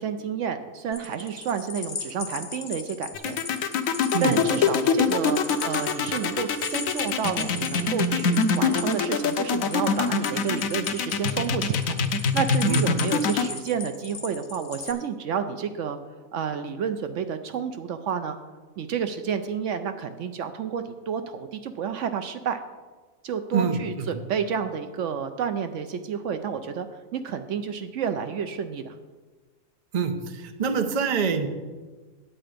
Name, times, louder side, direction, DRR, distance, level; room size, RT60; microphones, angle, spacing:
voice 1, 0.0-3.6 4.2-16.0 16.3-18.4 18.8-22.6 23.2-26.9 27.1-28.9, right 7 dB, 70° right, 9 dB, 0.9 m, -30 dB
sound 1, 0.9-14.9, left 5 dB, 45° left, 1.1 m, -38 dB
sound 2, 3.1-13.4, left 5 dB, 85° left, 1.1 m, -24 dB
voice 2, 23.5-24.1 29.9-31.5, right 6 dB, 40° right, 7 dB, 0.7 m, -25 dB
8.8 x 8.6 x 5.0 m, 1.3 s
omnidirectional pair, 1.4 m